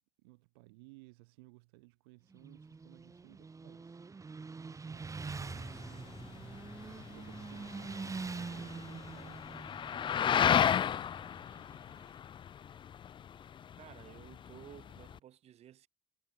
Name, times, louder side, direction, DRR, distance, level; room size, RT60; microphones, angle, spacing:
voice 1, 0.2-4.0 4.3-5.3 7.1-9.7, right 26 dB, 75° right, 3.2 m, -59 dB
Motorcycle, 2.3-12.1, right 4 dB, 25° right, 2.3 m, -45 dB
voice 2, 4.9-5.6 13.8-15.9, right 11 dB, 55° right, 6.6 m, -55 dB
sound 1, 5.3-15.2, left 9 dB, 40° left, 0.7 m, -34 dB
hypercardioid pair, 60°, 13 cm